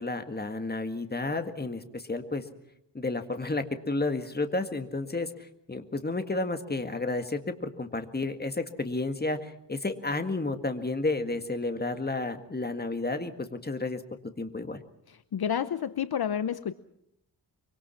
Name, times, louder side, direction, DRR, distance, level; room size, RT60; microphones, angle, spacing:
voice 1, 0.0-2.5 2.9-14.0 14.4-14.8, left 2 dB, 20° left, 7 dB, 1.9 m, -31 dB
voice 2, 15.1-16.7, left 8 dB, 60° left, 13 dB, 0.8 m, -30 dB
24.5 x 24.5 x 5.8 m, 0.76 s
wide cardioid pair, 115°, 42 cm